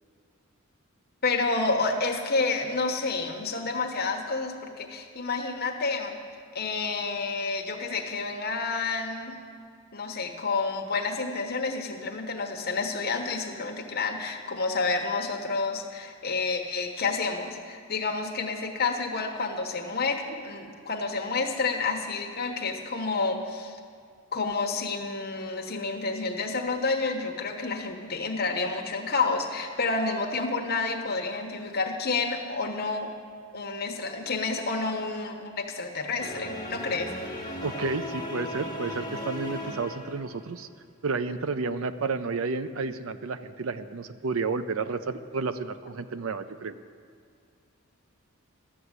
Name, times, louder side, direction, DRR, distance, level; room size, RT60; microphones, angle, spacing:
voice 1, 1.2-6.2 6.5-9.4 9.9-23.8 24.3-33.1 33.5-37.1, left 3 dB, 45° left, 3 dB, 1.2 m, -29 dB
sound 1, 36.2-40.6, left 1 dB, 15° left, 1.3 m, -36 dB
voice 2, 37.6-40.7 41.0-46.8, right 4 dB, 70° right, 11 dB, 0.5 m, -31 dB
12.5 x 7.4 x 8.1 m, 2.2 s
head